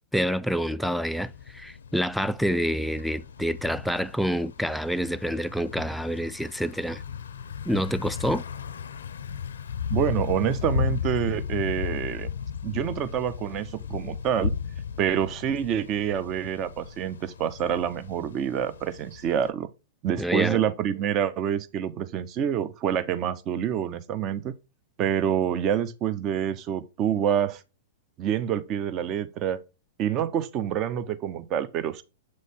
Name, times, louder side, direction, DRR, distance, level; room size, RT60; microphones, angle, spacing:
voice 1, 0.1-7.0 7.7-8.4 20.2-20.6, equal, ahead, 0.3 m, -27 dB
Thunder / Bicycle, 1.1-19.5, left 7 dB, 85° left, 0.5 m, -35 dB
voice 2, 9.9-12.3 12.6-14.5 15.0-19.7 20.0-24.5 25.0-27.6 28.2-29.6 30.0-32.0, right 9 dB, 35° right, 0.7 m, -27 dB
7.4 x 3.2 x 4.2 m
hypercardioid pair, 120°, 0 cm